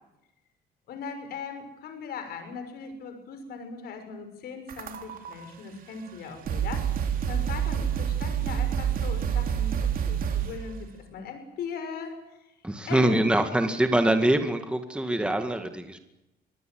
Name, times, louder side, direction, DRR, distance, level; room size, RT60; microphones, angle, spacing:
voice 1, 0.9-12.5 12.9-13.5, left 5 dB, 65° left, 7 dB, 6.0 m, -39 dB
sound 1, 4.7-5.3 6.1-6.2 6.4-10.7, right 8 dB, 60° right, 3.3 m, -28 dB
voice 2, 12.6-16.0, right 1 dB, 5° right, 7 dB, 2.0 m, -24 dB
26.0 x 19.5 x 7.8 m, 0.90 s
cardioid pair, 110°, 17 cm